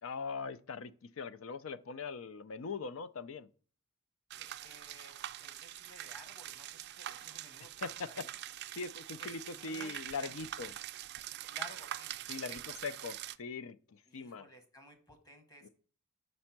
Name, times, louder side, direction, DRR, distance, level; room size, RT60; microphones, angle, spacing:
voice 1, 0.0-3.5 7.6-8.3 8.7-10.7 12.3-14.5 15.6-15.7, left 4 dB, 65° left, 0.5 m, -41 dB
voice 2, 4.3-8.2 9.2-10.3 10.6-10.8 11.5-12.2 12.5-12.6 14.1-15.7, left 1 dB, 15° left, 1.3 m, -56 dB
sound 1, 4.3-13.4, right 12 dB, 50° right, 0.3 m, -44 dB
5.5 x 5.2 x 5.8 m
head